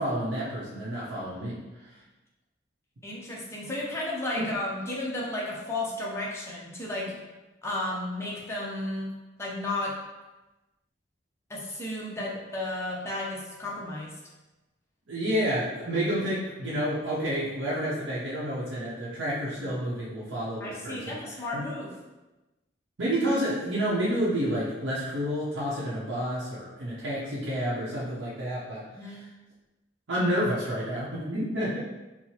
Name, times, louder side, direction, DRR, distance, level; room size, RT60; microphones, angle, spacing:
voice 1, 0.0-1.6 4.3-4.5 15.1-21.7 23.0-29.2 30.1-31.8, equal, 85° right, -8 dB, 0.8 m, -29 dB
voice 2, 3.0-7.1 7.6-9.1 9.4-9.9 11.5-14.1 20.6-22.0 28.9-29.2, left 1 dB, 15° left, -5 dB, 0.6 m, -33 dB
4.5 x 2.0 x 2.8 m, 1.1 s
head